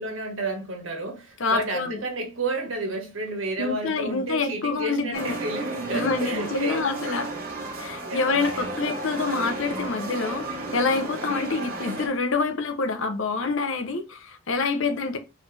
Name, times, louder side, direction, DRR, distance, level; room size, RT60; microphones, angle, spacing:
voice 1, 0.0-7.2 8.0-8.8, right 2 dB, 65° right, 1.6 m, -31 dB
voice 2, 1.4-2.0 3.6-5.4 5.9-7.3 7.8-15.2, left 4 dB, 65° left, 0.8 m, -27 dB
sound 1, 5.1-12.1, right 1 dB, 45° right, 1.7 m, -33 dB
4.6 x 3.3 x 3.3 m
head